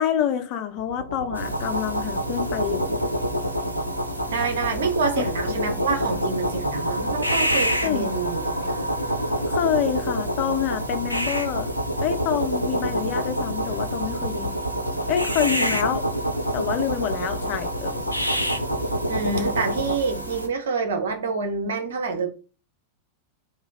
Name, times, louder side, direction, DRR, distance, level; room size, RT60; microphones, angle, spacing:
voice 1, 0.0-3.0 5.2-5.7 7.8-8.1 9.5-11.7 12.0-14.6 15.1-16.0 16.5-18.0, left 9 dB, 40° left, 0.7 m, -27 dB
sound 1, 0.8-20.0, equal, 85° left, 0.5 m, -27 dB
sound 2, 1.3-20.5, right 2 dB, 85° right, 0.7 m, -34 dB
voice 2, 4.3-8.9 19.1-22.3, right 4 dB, 65° right, 1.0 m, -27 dB
3.6 x 3.0 x 4.1 m
figure-of-eight pair, 90°, 0 cm